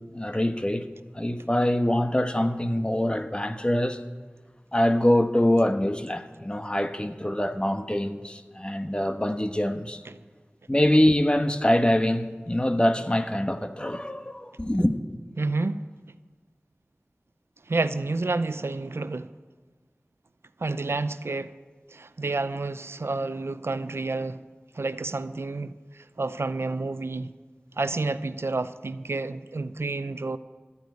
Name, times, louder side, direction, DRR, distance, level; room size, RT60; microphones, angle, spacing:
voice 1, 0.1-0.9 1.1-4.0 4.7-10.0 10.7-14.9, left 1 dB, 25° left, 1.1 m, -24 dB
voice 2, 15.4-15.8 17.7-19.3 20.6-21.5 21.9-24.4 24.7-27.3 27.8-30.4, right 3 dB, 90° right, 0.6 m, -29 dB
13.5 x 9.2 x 9.5 m
wide cardioid pair, 40°, 4 cm